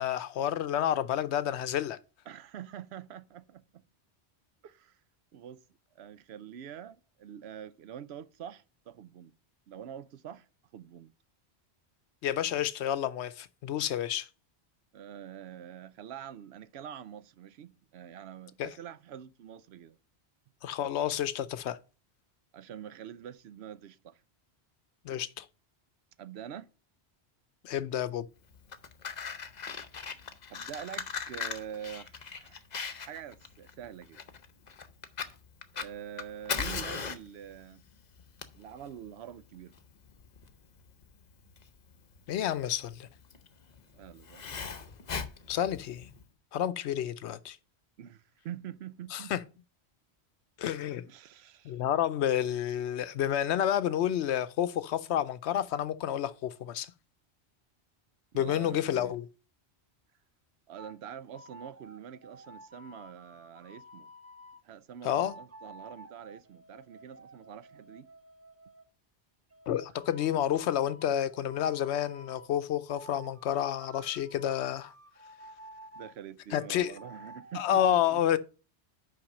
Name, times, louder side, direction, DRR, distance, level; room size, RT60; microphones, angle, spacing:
voice 1, 0.0-2.0 12.2-14.3 18.6-18.7 20.6-21.8 25.0-25.5 27.6-28.3 42.3-43.1 45.5-46.1 46.5-47.6 49.1-49.4 50.6-51.1 51.6-56.9 58.3-59.3 65.0-65.4 69.7-74.9 76.5-76.9 77.5-78.4, left 10 dB, 80° left, 0.9 m, -30 dB
voice 2, 2.3-3.8 4.6-5.0 5.3-5.6 6.0-9.3 9.7-10.5 10.7-11.1 14.9-20.0 22.5-24.2 26.2-26.7 30.5-32.6 33.0-34.2 35.7-37.9 38.5-39.7 43.9-44.4 48.0-49.3 51.1-51.8 58.3-59.2 60.7-64.1 64.6-68.1 75.9-78.2, right 9 dB, 75° right, 0.8 m, -45 dB
Fire, 28.5-46.2, left 6 dB, 45° left, 0.8 m, -40 dB
sound 1, 60.8-61.0 61.3-64.6 65.1-68.8 69.5-72.5 72.9-76.1 76.6-77.6, equal, 25° right, 0.3 m, -52 dB
5.9 x 5.3 x 6.3 m
omnidirectional pair, 1.1 m